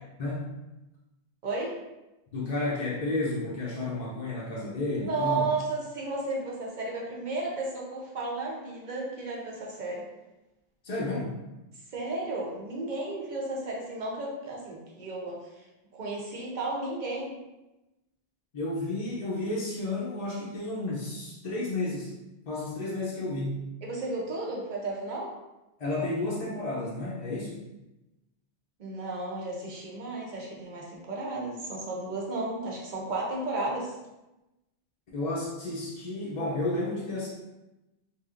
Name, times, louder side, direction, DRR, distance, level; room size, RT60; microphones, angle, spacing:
voice 1, 1.4-1.7 4.9-10.0 11.9-15.4 15.9-17.3 23.8-25.3 28.8-34.0, right 2 dB, 50° right, -2 dB, 0.8 m, -33 dB
voice 2, 2.3-5.5 10.8-11.4 18.5-22.1 22.5-23.6 25.8-27.6 35.1-37.3, left 2 dB, 50° left, -6 dB, 0.6 m, -32 dB
3.3 x 2.6 x 2.4 m, 0.99 s
omnidirectional pair, 1.1 m